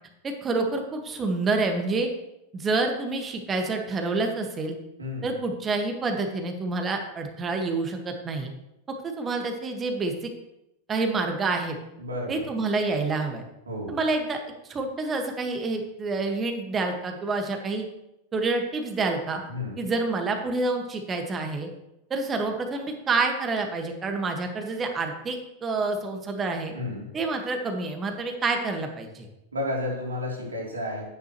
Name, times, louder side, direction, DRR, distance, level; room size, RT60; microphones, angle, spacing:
voice 1, 0.2-2.1 2.5-4.8 5.2-8.5 8.9-10.1 10.9-11.8 12.3-13.4 13.9-14.4 14.7-17.9 18.3-19.4 19.8-21.7 22.1-26.7 27.1-29.3, right 3 dB, 20° right, 4 dB, 1.7 m, -28 dB
voice 2, 5.0-5.3 12.0-12.4 13.7-14.0 19.5-19.8 26.7-27.1 29.5-31.0, left 1 dB, 75° right, -2 dB, 3.4 m, -32 dB
11.5 x 9.6 x 3.1 m, 0.88 s
figure-of-eight pair, 90°, 0 cm